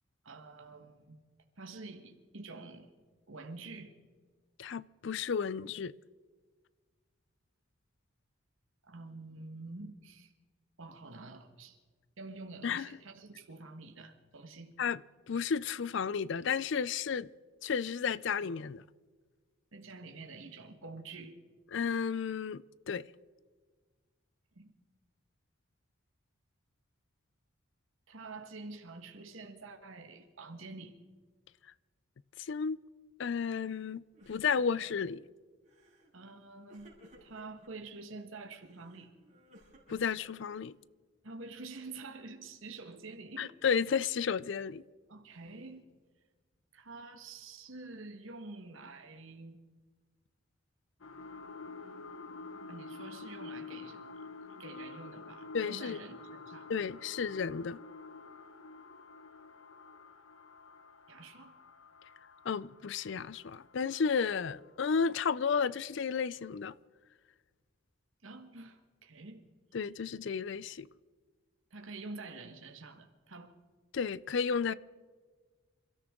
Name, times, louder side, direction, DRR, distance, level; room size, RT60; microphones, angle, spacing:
voice 1, 0.2-1.2 1.6-2.9 3.3-3.9 8.8-10.3 10.8-11.8 12.2-14.7 19.7-21.4 24.5-24.7 28.1-31.0 36.1-39.1 41.2-43.5 45.1-45.8 46.7-49.6 52.7-54.2 54.6-56.7 61.1-61.5 68.2-69.4 71.7-73.5, right 3 dB, 75° right, 1.5 m, -47 dB
voice 2, 4.6-5.9 12.6-12.9 14.8-15.0 15.3-17.3 17.6-18.8 21.7-23.0 32.4-32.8 33.2-35.2 39.9-40.7 43.4-44.8 55.5-56.0 56.7-57.8 62.5-66.7 69.7-70.9 73.9-74.7, left 6 dB, 60° left, 0.4 m, -32 dB
Crying sobbing, 33.5-33.9 34.1-35.2 35.7-36.1 36.7-37.7 38.6-40.8, equal, 35° right, 4.9 m, -59 dB
sound 1, 51.0-64.2 64.7-64.8, left 3 dB, 75° left, 1.1 m, -49 dB
28.0 x 13.5 x 3.7 m
head